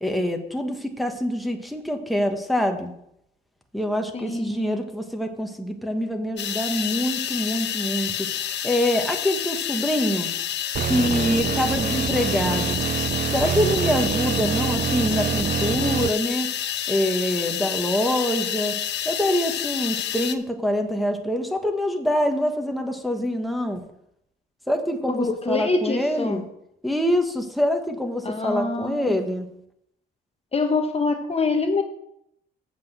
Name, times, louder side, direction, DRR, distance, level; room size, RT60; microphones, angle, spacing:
voice 1, 0.0-2.9 3.7-8.3 8.6-10.3 10.9-12.8 13.3-16.5 16.9-18.7 19.0-23.8 24.7-26.4 26.8-29.5, equal, ahead, 4 dB, 1.3 m, -25 dB
voice 2, 4.1-4.8 25.1-26.4 28.2-29.1 30.5-31.8, left 3 dB, 30° left, 5 dB, 1.1 m, -25 dB
sound 1, 6.4-20.3, left 10 dB, 60° left, 0.7 m, -29 dB
sound 2, 10.7-16.1, right 8 dB, 45° right, 0.5 m, -26 dB
7.4 x 6.0 x 7.5 m, 0.76 s
cardioid pair, 90°, 20 cm